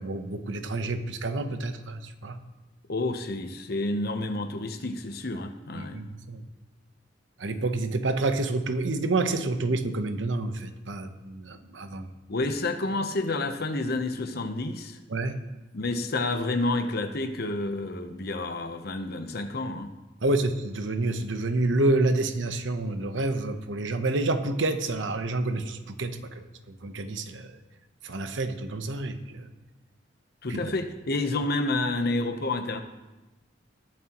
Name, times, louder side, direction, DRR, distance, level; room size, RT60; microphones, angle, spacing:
voice 1, 0.0-2.4 5.8-6.4 7.4-12.1 15.1-15.4 20.2-26.4 26.8-27.6 28.0-29.5 30.5-30.6, right 2 dB, 90° right, 8 dB, 1.0 m, -28 dB
voice 2, 2.9-6.0 12.3-15.0 15.7-19.9 30.4-32.8, left 2 dB, 60° left, 8 dB, 0.9 m, -29 dB
20.5 x 7.5 x 3.0 m, 1.1 s
head